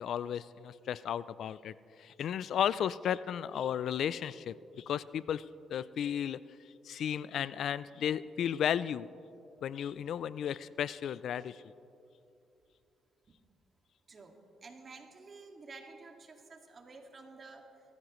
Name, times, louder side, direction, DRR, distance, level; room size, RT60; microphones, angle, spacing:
voice 1, 0.0-5.4 5.7-6.4 6.8-9.1 9.6-11.6, left 9 dB, 70° left, 18 dB, 0.3 m, -34 dB
voice 2, 14.1-17.7, right 3 dB, 40° right, 3 dB, 2.0 m, -51 dB
22.5 x 14.5 x 3.1 m, 2.6 s
cardioid pair, 90°, 0 cm